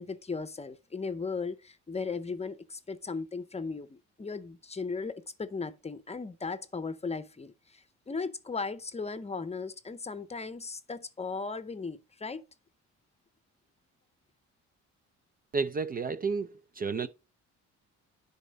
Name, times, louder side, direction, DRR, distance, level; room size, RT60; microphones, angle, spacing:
voice 1, 0.0-12.4, left 4 dB, 20° left, 0.7 m, -37 dB
voice 2, 15.5-17.1, right 5 dB, 30° right, 0.5 m, -31 dB
10.0 x 4.1 x 4.0 m
cardioid pair, 90°, 30 cm